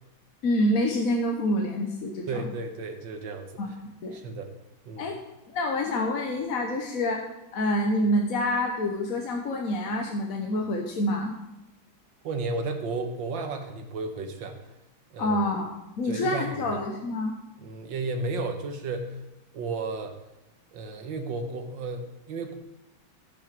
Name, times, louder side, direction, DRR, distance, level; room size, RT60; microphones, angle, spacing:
voice 1, 0.4-2.4 3.6-4.2 5.0-5.2 5.5-7.2 7.5-11.3 15.2-17.3, left 1 dB, 50° left, 2 dB, 1.2 m, -27 dB
voice 2, 2.3-3.5 4.1-4.5 4.9-5.1 12.2-14.6 15.1-15.4 16.0-16.6 17.6-19.2 19.5-20.2 20.7-22.5, right 3 dB, 70° right, 5 dB, 1.8 m, -33 dB
14.0 x 6.2 x 5.1 m, 0.94 s
omnidirectional pair, 2.2 m